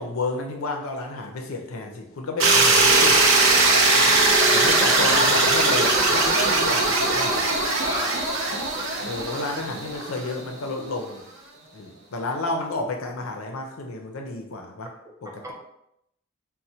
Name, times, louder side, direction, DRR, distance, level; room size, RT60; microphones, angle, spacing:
voice 1, 0.0-3.3 4.5-7.5 9.0-11.3 11.7-14.9 15.2-15.5, left 2 dB, 80° left, 3 dB, 0.5 m, -31 dB
sound 1, 2.4-10.4, right 2 dB, 75° right, 0.5 m, -20 dB
voice 2, 3.9-4.6 7.8-8.3 15.2-15.5, right 1 dB, 15° right, 0 dB, 0.5 m, -36 dB
4.2 x 2.1 x 2.7 m, 0.78 s
head